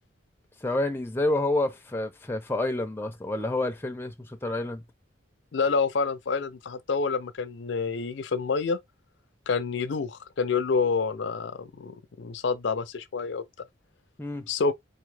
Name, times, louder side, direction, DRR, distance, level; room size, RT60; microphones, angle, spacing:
voice 1, 0.6-4.8 14.2-14.5, left 2 dB, 10° left, 0.5 m, -28 dB
voice 2, 5.5-8.8 9.5-13.4 14.5-14.7, left 4 dB, 60° left, 0.4 m, -28 dB
4.0 x 3.5 x 3.3 m
head